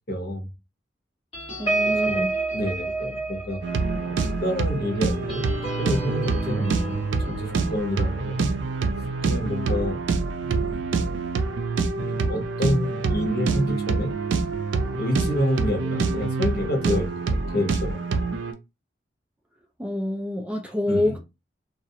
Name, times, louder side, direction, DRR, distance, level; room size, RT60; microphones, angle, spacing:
voice 1, 0.1-0.5 1.8-2.2 2.5-3.6 4.0-5.5 5.8-8.5 9.2-10.0 10.4-10.9 12.0-14.1 14.7-18.0 20.9-21.1, left 1 dB, 60° left, 0.9 m, -28 dB
sound 1, 1.3-10.3 10.7-10.9 11.2-11.5, right 2 dB, 30° left, 1.2 m, -32 dB
voice 2, 1.6-2.3 19.8-21.2, left 1 dB, 5° right, 0.3 m, -26 dB
sound 2, 3.6-18.5, right 4 dB, 85° right, 0.4 m, -26 dB
2.4 x 2.0 x 2.7 m
head